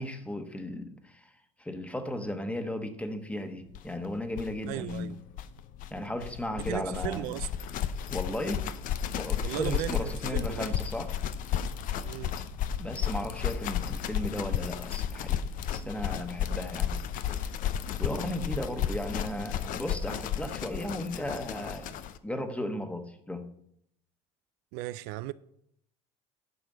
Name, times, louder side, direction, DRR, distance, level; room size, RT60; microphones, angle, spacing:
voice 1, 0.0-1.3 1.6-5.1 5.9-7.3 8.1-8.6 9.1-11.1 12.8-15.4 15.7-17.5 18.0-23.5, left 1 dB, 10° left, 1.3 m, -35 dB
sound 1, 3.7-3.8 4.0-4.1 4.3-22.2, left 9 dB, 55° left, 0.7 m, -33 dB
voice 2, 4.7-5.2 6.5-7.5 9.4-10.8 12.0-12.4 24.7-25.3, right 17 dB, 75° right, 0.4 m, -36 dB
11.0 x 4.9 x 6.7 m
supercardioid pair, 95°, 16 cm